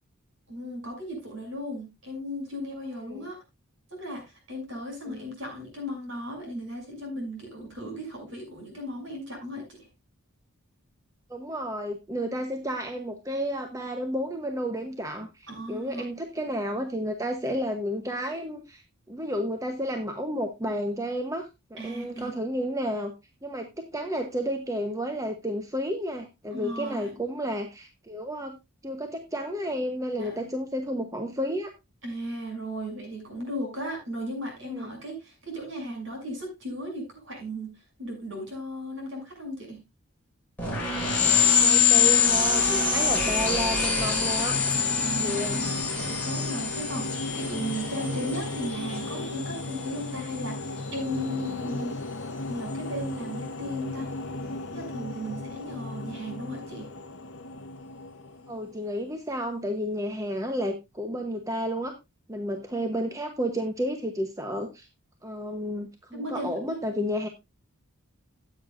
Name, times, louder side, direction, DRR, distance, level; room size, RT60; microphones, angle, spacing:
voice 1, 0.5-3.4 4.0-9.8 15.5-16.1 21.8-22.3 26.5-27.1 30.2-30.4 32.0-37.7 38.0-39.8 45.0-51.9 52.5-54.1 54.7-56.9 66.1-66.8, equal, 55° right, 2 dB, 6.6 m, -36 dB
voice 2, 11.3-18.8 19.1-23.1 23.4-28.5 28.8-31.7 34.7-34.9 41.6-44.6 45.2-45.6 48.2-48.3 58.5-61.9 62.3-64.9 65.2-67.3, equal, 15° right, 5 dB, 0.9 m, -31 dB
sound 1, 40.6-50.7, left 6 dB, 5° left, 4.7 m, -25 dB
sound 2, 43.6-58.9, left 2 dB, 55° left, 0.9 m, -36 dB
15.5 x 8.6 x 2.5 m, 0.23 s
head